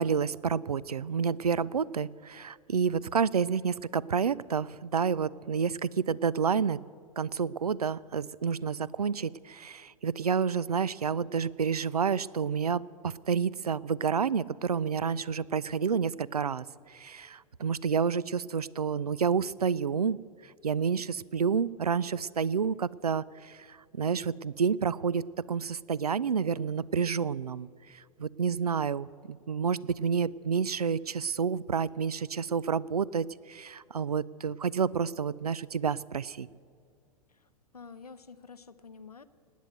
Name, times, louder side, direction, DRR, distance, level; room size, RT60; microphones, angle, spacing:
voice 1, 0.0-6.8 7.2-16.6 16.9-20.2 20.6-23.6 23.9-27.7 28.2-36.5, right 6 dB, 85° right, 22 dB, 0.4 m, -29 dB
voice 2, 37.3-39.2, left 5 dB, 85° left, 11 dB, 0.8 m, -49 dB
18.5 x 9.3 x 7.8 m, 2.2 s
figure-of-eight pair, 100°, 19 cm